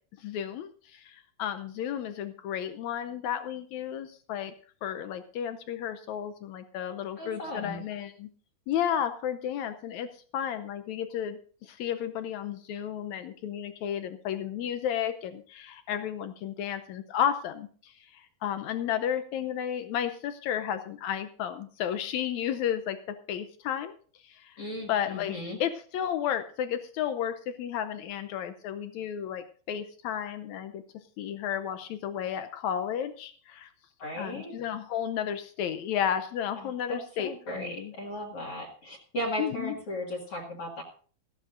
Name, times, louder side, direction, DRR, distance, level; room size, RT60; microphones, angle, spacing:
voice 1, 0.2-4.5 4.8-8.3 8.7-23.9 24.2-24.6 24.9-25.3 25.6-30.8 31.2-33.7 34.2-37.9 39.4-39.8, left 9 dB, 85° left, 10 dB, 1.6 m, -33 dB
voice 2, 7.2-7.8 24.6-25.6 34.0-34.5 36.6-40.8, equal, 45° left, 2 dB, 2.5 m, -36 dB
17.5 x 14.0 x 2.6 m, 0.43 s
omnidirectional pair, 4.2 m